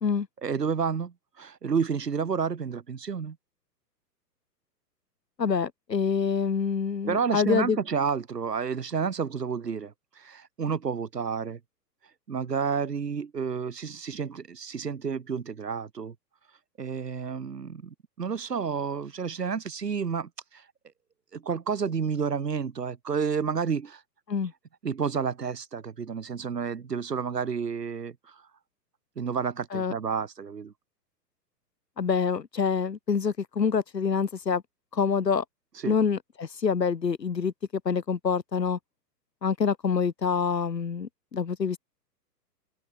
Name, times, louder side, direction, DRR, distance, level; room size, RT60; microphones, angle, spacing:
voice 1, 0.4-3.4 7.1-11.6 12.3-16.2 16.8-20.7 21.3-24.0 24.8-28.4 29.2-30.7 35.8-36.0, right 6 dB, 70° right, 2.0 m, -30 dB
voice 2, 5.4-7.8 24.3-24.5 29.7-29.9 32.0-34.6 34.9-35.4 35.9-38.8 39.4-41.8, left 6 dB, 75° left, 1.3 m, -26 dB
open air
figure-of-eight pair, 115°, 50 cm